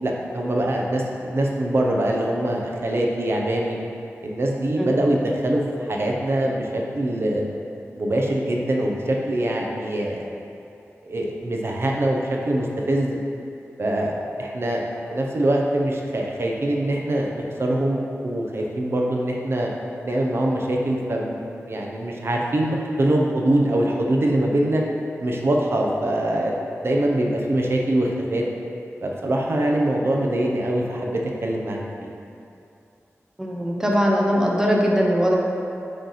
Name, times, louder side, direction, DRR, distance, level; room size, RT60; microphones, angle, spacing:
voice 1, 0.0-3.8 4.2-7.4 8.0-10.4 11.0-13.2 13.8-14.1 14.4-14.8 15.1-19.7 20.0-21.4 21.7-24.8 25.2-26.6 26.8-28.4 29.0-32.1, right 1 dB, 55° right, -1 dB, 0.7 m, -23 dB
voice 2, 33.4-35.4, equal, 10° right, -2 dB, 0.8 m, -20 dB
7.8 x 3.3 x 4.1 m, 2.7 s
wide cardioid pair, 110°, 5 cm